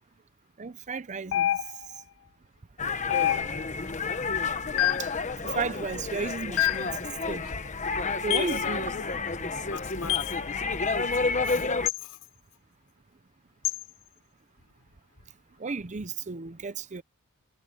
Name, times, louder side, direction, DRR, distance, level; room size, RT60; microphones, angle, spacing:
voice 1, 0.6-1.6 5.0-5.1 5.4-7.0 7.3-7.5 8.2-8.9 9.4-9.5 15.6-17.0, right 4 dB, 30° right, 0.6 m, -34 dB
sound 1, 1.3-2.0 3.1-3.8 4.8-5.2 6.6-7.0 8.3-8.6 10.1-10.4 11.9-12.0 13.6-13.8, left 13 dB, 60° left, 0.4 m, -27 dB
sound 2, 2.8-11.9, left 4 dB, 35° left, 1.2 m, -30 dB
voice 2, 8.2-8.8 9.6-10.5 10.9-11.7 12.0-12.3, left 4 dB, 85° left, 5.6 m, -40 dB
head